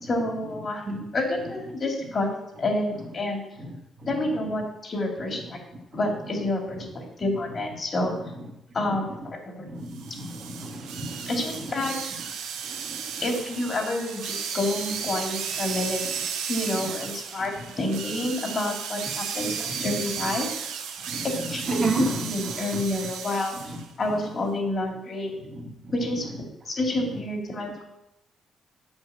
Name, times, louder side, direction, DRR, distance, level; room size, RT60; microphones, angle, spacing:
voice 1, 0.0-0.8 1.1-2.3 2.6-3.4 4.1-5.6 5.9-8.1 8.7-9.7 11.3-11.9 13.2-16.0 16.5-20.5 21.2-23.6 24.0-25.3 25.9-27.8, left 2 dB, 45° left, 2 dB, 3.1 m, -29 dB
voice 2, 9.7-11.1 21.1-21.3 21.7-22.1, right 3 dB, 45° right, 1 dB, 2.2 m, -29 dB
sound 1, 9.9-23.9, right 7 dB, 85° right, 1.1 m, -34 dB
8.1 x 5.6 x 7.3 m, 0.89 s
supercardioid pair, 65°, 0 cm